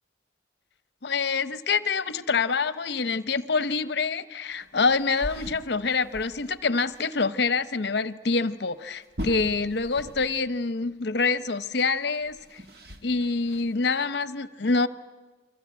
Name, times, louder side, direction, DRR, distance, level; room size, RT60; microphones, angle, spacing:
voice 1, 1.0-12.6 13.0-14.9, left 4 dB, 55° left, 15 dB, 0.8 m, -26 dB
sound 1, 4.6-6.6 6.9-7.0 7.4-7.5 8.9-10.5 10.8-10.9 11.8-13.8, equal, 55° right, 1.5 m, -41 dB
29.0 x 23.5 x 8.7 m, 1.2 s
head